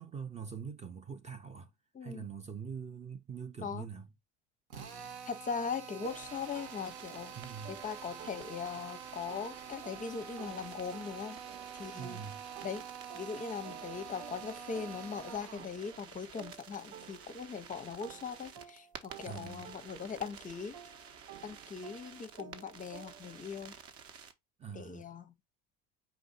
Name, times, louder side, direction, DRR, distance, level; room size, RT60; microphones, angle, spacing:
voice 1, 0.0-1.7 2.0-4.1 7.3-7.8 12.0-12.4 19.3-19.7 24.6-25.1, right 6 dB, 20° right, 0.6 m, -43 dB
voice 2, 1.9-2.3 3.6-3.8 5.2-7.3 7.7-11.4 11.7-12.2 12.6-12.8 13.1-20.8 21.4-23.7 24.7-25.3, left 6 dB, 25° left, 0.6 m, -40 dB
Drill, 4.7-15.7, right 6 dB, 90° right, 1.1 m, -47 dB
sound 1, 6.0-24.3, right 6 dB, 45° right, 1.0 m, -52 dB
sound 2, 6.0-8.9 9.3-17.6 18.0-23.4, right 9 dB, 70° right, 0.8 m, -54 dB
5.1 x 2.6 x 3.9 m
supercardioid pair, 105°, 33 cm